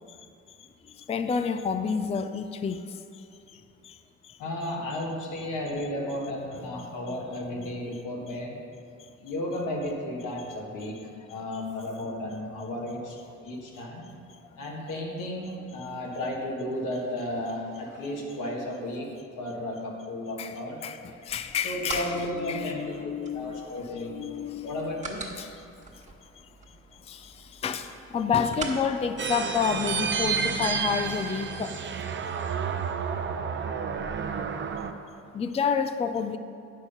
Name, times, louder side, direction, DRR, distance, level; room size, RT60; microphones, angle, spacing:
voice 1, 0.6-3.3 3.5-4.0 4.2-4.4 6.6-7.2 7.6-7.7 11.5-11.6 20.4-25.0 25.4-31.7 35.3-36.4, left 6 dB, 20° left, 9 dB, 0.4 m, -31 dB
voice 2, 4.4-8.6 9.2-11.0 11.3-13.2 13.4-14.1 14.6-19.1 19.4-20.8 21.6-24.2 24.6-25.2, left 1 dB, 85° left, -2 dB, 1.8 m, -33 dB
sound 1, 21.3-30.2, right 3 dB, 25° right, 1.5 m, -43 dB
sound 2, 29.2-34.9, right 6 dB, 40° right, 0.6 m, -30 dB
8.7 x 6.4 x 5.6 m, 2.4 s
cardioid pair, 90°, 30 cm